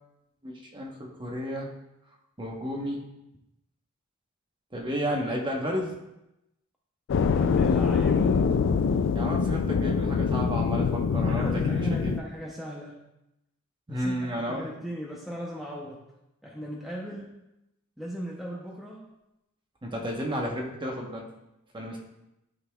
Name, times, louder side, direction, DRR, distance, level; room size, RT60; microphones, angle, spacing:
voice 1, 0.4-1.7 2.4-3.0 4.7-5.9 9.1-12.1 13.9-14.7 19.8-21.3 21.7-22.0, equal, 20° right, 0 dB, 1.0 m, -32 dB
sound 1, 7.1-12.2, left 5 dB, 60° left, 0.3 m, -24 dB
voice 2, 7.3-8.4 11.3-13.0 13.9-16.0 16.4-17.4 18.0-19.1, equal, ahead, -4 dB, 0.7 m, -38 dB
12.0 x 4.0 x 2.3 m, 0.89 s
head